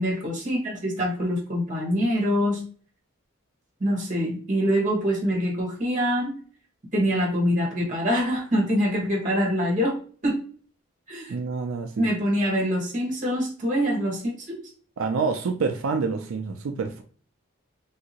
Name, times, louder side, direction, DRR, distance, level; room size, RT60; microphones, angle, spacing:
voice 1, 0.0-2.6 3.8-6.3 6.9-10.0 10.2-10.4 11.1-11.3 12.0-14.5, equal, 40° right, -2 dB, 1.2 m, -24 dB
voice 2, 11.3-12.1 15.0-17.0, right 4 dB, 90° right, 5 dB, 0.4 m, -27 dB
3.4 x 2.7 x 2.8 m, 0.43 s
head